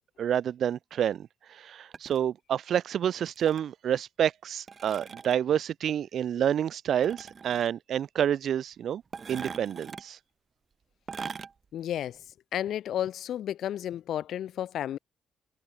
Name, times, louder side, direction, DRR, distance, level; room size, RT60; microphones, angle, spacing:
voice 1, 0.2-9.0 9.3-10.2, right 9 dB, 65° right, 0.3 m, -28 dB
sound 1, 1.9-2.2 3.4-3.7 4.7-5.4 7.0-7.7 9.1-10.0 11.1-11.5 12.0-12.1, right 5 dB, 40° right, 1.4 m, -41 dB
voice 2, 11.7-12.2 12.5-15.0, left 11 dB, 70° left, 0.5 m, -32 dB
cardioid pair, 90°, 0 cm